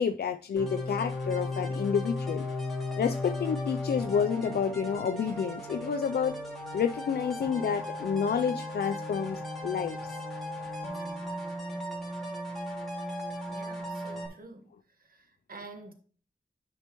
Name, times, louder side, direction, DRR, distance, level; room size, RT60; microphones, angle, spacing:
voice 1, 0.0-2.5 3.0-6.4 6.7-10.0, left 7 dB, 85° left, 0.4 m, -29 dB
sound 1, 0.6-14.3, left 1 dB, ahead, 2.6 m, -36 dB
voice 2, 13.5-14.7 15.0-15.9, right 3 dB, 65° right, 1.2 m, -48 dB
10.0 x 5.5 x 3.0 m
wide cardioid pair, 90°, 16 cm